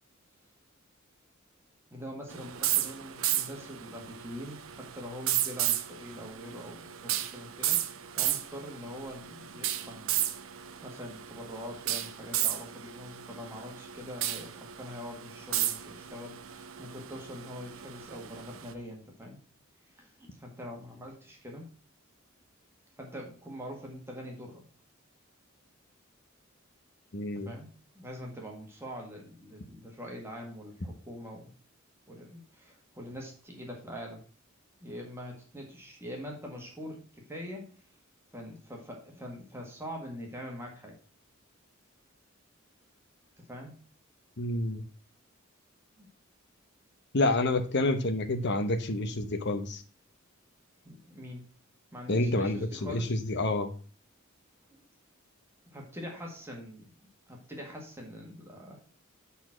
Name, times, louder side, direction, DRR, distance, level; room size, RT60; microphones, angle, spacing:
voice 1, 1.9-10.2 10.8-19.4 19.9-21.7 23.0-24.6 27.3-27.7 28.0-31.5 32.1-34.2 34.8-37.7 38.3-40.9 43.4-43.7 46.0-46.1 50.8-51.4 51.9-53.2 54.7-54.8 55.7-56.9 57.3-59.0, equal, 10° right, 0 dB, 1.8 m, -44 dB
sound 1, 2.3-18.7, right 12 dB, 75° right, 0.6 m, -34 dB
voice 2, 27.1-27.5 44.4-44.8 47.1-49.8 52.1-53.7, left 2 dB, 55° left, 8 dB, 1.0 m, -28 dB
7.1 x 4.2 x 6.0 m, 0.40 s
head